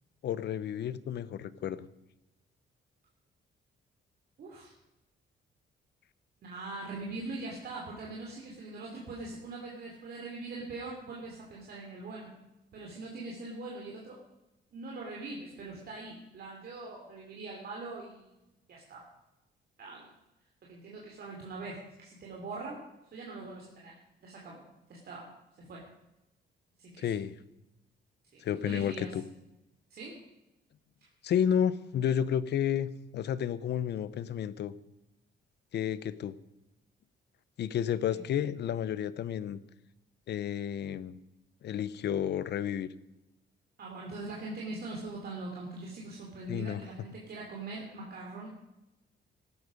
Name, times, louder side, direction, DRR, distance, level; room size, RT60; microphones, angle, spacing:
voice 1, 0.2-1.9 27.0-27.3 28.4-29.2 31.2-34.7 35.7-36.4 37.6-39.6 40.3-41.2 41.6-42.9 46.5-46.8, left 9 dB, 65° left, 16 dB, 0.8 m, -31 dB
voice 2, 4.4-4.7 6.4-12.3 12.7-14.2 14.7-18.3 18.7-19.0 19.8-20.1 20.6-22.8 23.1-24.0 24.2-24.6 24.9-25.3 25.6-25.8 26.8-27.1 28.3-29.1 29.9-30.2 38.1-38.2 43.8-48.5, right 3 dB, 55° right, -2 dB, 3.0 m, -42 dB
16.5 x 12.0 x 5.3 m, 0.95 s
cardioid pair, 145°, 19 cm